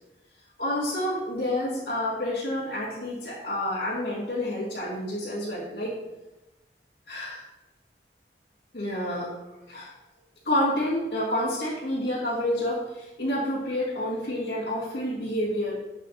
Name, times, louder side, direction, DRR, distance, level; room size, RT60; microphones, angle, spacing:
voice 1, 0.6-5.9 7.1-7.4 8.7-9.3 9.7-9.9 10.4-12.8 13.2-15.8, left 1 dB, 70° left, -9 dB, 2.0 m, -28 dB
7.7 x 7.6 x 2.7 m, 1.0 s
head